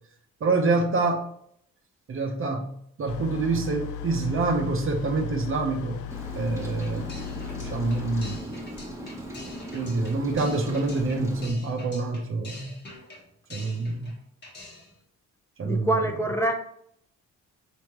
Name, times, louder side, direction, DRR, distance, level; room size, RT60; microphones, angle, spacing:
voice 1, 0.4-1.3 2.1-6.0 6.3-7.1 7.6-8.5 9.7-12.8 13.5-14.2 15.6-16.0, right 3 dB, 45° right, 5 dB, 0.8 m, -26 dB
sound 1, 3.1-8.4, left 9 dB, 85° left, 0.5 m, -37 dB
Rain, 6.1-11.5, equal, 10° right, 1.1 m, -39 dB
sound 2, 6.8-14.2 14.4-15.0, left 2 dB, 35° left, 1.3 m, -46 dB
voice 2, 15.6-16.5, right 1 dB, 10° left, 2 dB, 0.5 m, -25 dB
4.1 x 3.5 x 2.9 m, 0.69 s
cardioid pair, 90°, 30 cm